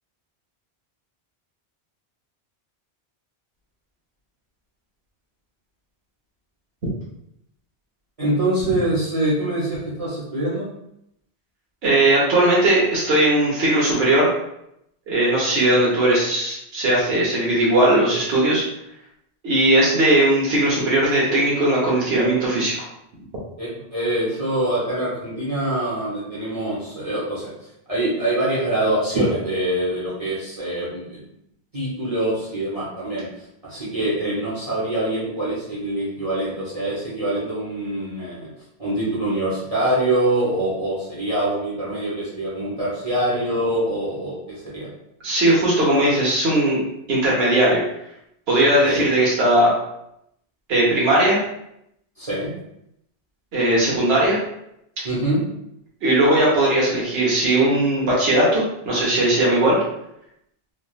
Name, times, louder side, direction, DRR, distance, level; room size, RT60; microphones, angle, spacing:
voice 1, 8.2-10.7 23.6-27.5 27.9-31.2 31.7-33.3 33.6-38.5 38.8-44.4 44.7-44.9 48.8-49.0 52.2-52.5 55.0-55.4, right 1 dB, 35° right, -9 dB, 0.8 m, -24 dB
voice 2, 11.8-14.3 15.1-18.6 19.4-22.7 45.2-47.8 48.5-49.7 50.7-51.4 53.5-54.4 56.0-59.8, right 1 dB, 70° right, -5 dB, 1.0 m, -18 dB
3.2 x 2.3 x 2.3 m, 0.79 s
omnidirectional pair, 1.1 m